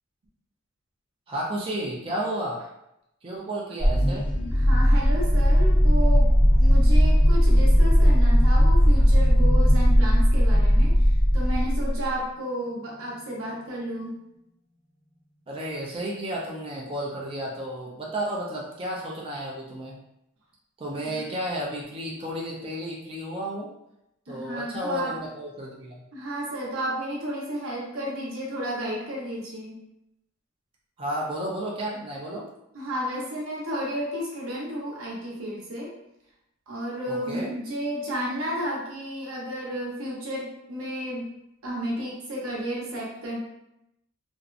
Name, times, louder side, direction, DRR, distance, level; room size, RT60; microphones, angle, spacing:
voice 1, 1.3-2.7 3.2-4.3 15.5-20.0 20.8-23.7 24.3-26.0 31.0-32.5 37.1-37.5, right 1 dB, 25° right, -4 dB, 0.4 m, -32 dB
sound 1, 3.8-12.0, equal, 40° left, 0.6 m, -18 dB
voice 2, 4.5-6.3 6.6-14.2 21.1-21.2 24.3-25.2 26.1-29.8 32.7-35.9 36.7-41.3 41.6-43.4, equal, 90° right, -4 dB, 0.8 m, -32 dB
2.6 x 2.0 x 2.4 m, 0.83 s
head